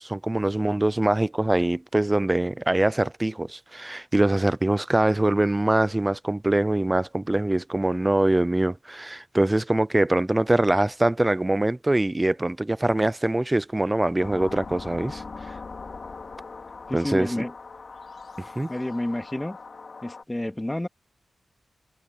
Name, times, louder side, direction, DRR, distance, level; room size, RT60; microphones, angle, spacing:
voice 1, 0.0-15.5 16.9-17.4 18.4-18.7, right 1 dB, 15° right, 0.5 m, -23 dB
sound 1, 14.2-20.2, left 4 dB, 45° left, 2.7 m, -40 dB
voice 2, 16.9-17.5 18.7-19.6 20.0-20.9, left 1 dB, 10° left, 2.5 m, -29 dB
wide cardioid pair, 95°, 0 cm